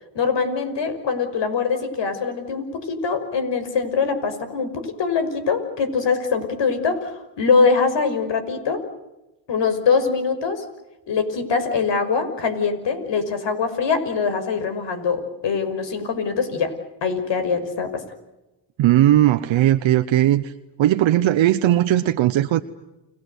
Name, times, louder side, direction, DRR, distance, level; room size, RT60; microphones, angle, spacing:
voice 1, 0.1-8.8 9.5-10.6 11.1-16.7 17.0-18.0, left 5 dB, 60° left, 9 dB, 5.9 m, -23 dB
voice 2, 18.8-20.5 20.8-22.6, right 13 dB, 70° right, 9 dB, 1.1 m, -17 dB
30.0 x 19.5 x 8.2 m, 0.98 s
supercardioid pair, 70°, 48 cm